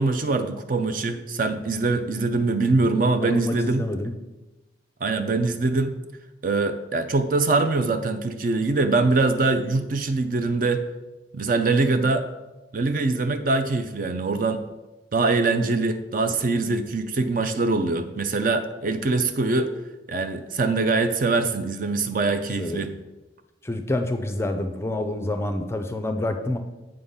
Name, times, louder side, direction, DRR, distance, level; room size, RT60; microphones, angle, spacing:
voice 1, 0.0-3.9 5.0-5.9 6.4-10.8 11.3-12.3 12.7-14.6 15.1-19.7 20.1-22.9, right 3 dB, 45° right, 9 dB, 0.4 m, -23 dB
voice 2, 3.2-4.1 22.6-22.9 23.6-26.6, left 1 dB, 15° left, 7 dB, 0.4 m, -28 dB
7.7 x 3.7 x 5.5 m, 1.1 s
head